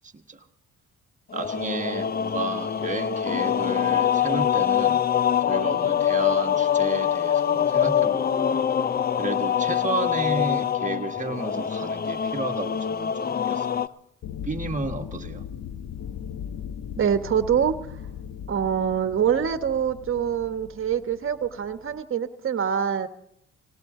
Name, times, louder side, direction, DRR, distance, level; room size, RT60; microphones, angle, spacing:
voice 1, 0.1-0.4 1.3-5.0 5.5-8.6 9.2-13.8 14.4-15.5, right 3 dB, 25° right, 4 dB, 1.5 m, -32 dB
sound 1, 1.3-13.9, left 9 dB, 30° left, 0.5 m, -24 dB
sound 2, 14.2-22.0, left 8 dB, 60° left, 0.9 m, -38 dB
voice 2, 17.0-17.8 18.5-23.1, right 8 dB, 45° right, 8 dB, 1.4 m, -25 dB
19.5 x 17.5 x 3.8 m, 0.72 s
cardioid pair, 90°, 30 cm